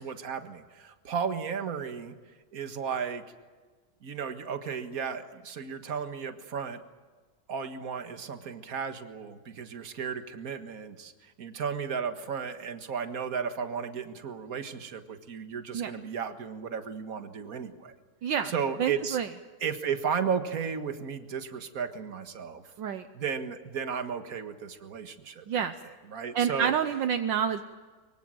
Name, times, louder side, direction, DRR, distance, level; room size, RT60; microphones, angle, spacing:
voice 1, 0.0-2.2 2.5-3.2 4.0-6.8 7.5-17.9 18.4-19.2 19.6-22.6 23.1-25.7 26.1-26.7, right 6 dB, 45° right, 7 dB, 1.9 m, -34 dB
voice 2, 18.2-18.5 18.8-19.3 22.8-23.1 25.5-25.7 26.3-27.6, right 8 dB, 70° right, 9 dB, 1.5 m, -28 dB
24.0 x 24.0 x 7.8 m, 1.4 s
omnidirectional pair, 2.2 m